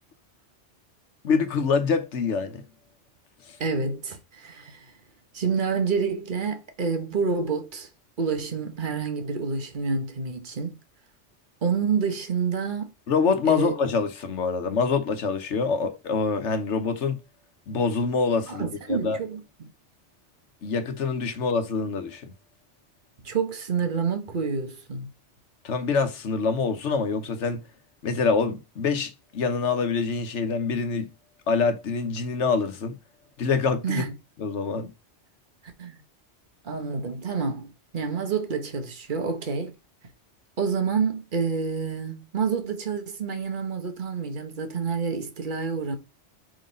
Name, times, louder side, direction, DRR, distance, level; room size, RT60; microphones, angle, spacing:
voice 1, 1.2-2.6 13.1-17.2 17.7-19.2 20.6-22.3 25.6-27.6 28.0-31.1 31.5-33.0 33.4-34.0 34.4-34.9, left 5 dB, 80° left, 1.3 m, -25 dB
voice 2, 3.6-4.9 5.3-7.9 8.2-10.8 11.6-12.9 13.4-13.7 18.5-19.7 23.2-25.1 33.8-34.1 35.8-36.0 36.6-39.7 40.6-46.0, right 5 dB, 45° right, 1.3 m, -28 dB
5.1 x 3.9 x 5.1 m
omnidirectional pair, 1.2 m